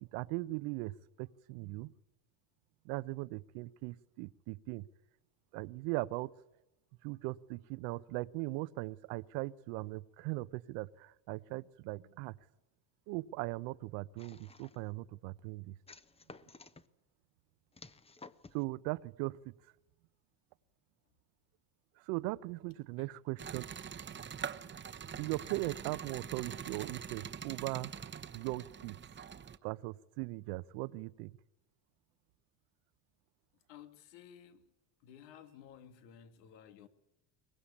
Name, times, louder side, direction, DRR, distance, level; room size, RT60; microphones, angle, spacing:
voice 1, 0.0-1.9 2.8-4.9 5.5-6.3 7.0-12.3 13.1-15.8 18.5-19.5 22.0-23.7 25.2-27.9 28.3-29.0 29.6-31.4, right 21 dB, 75° right, 1.0 m, -39 dB
sound 1, 14.2-14.9 15.9-16.9 17.7-18.6, left 3 dB, 10° left, 1.0 m, -54 dB
sound 2, 23.4-29.6, right 7 dB, 25° right, 1.1 m, -44 dB
voice 2, 33.7-34.7 35.0-36.9, left 9 dB, 85° left, 2.6 m, -55 dB
23.0 x 20.0 x 8.6 m
supercardioid pair, 115°, 48 cm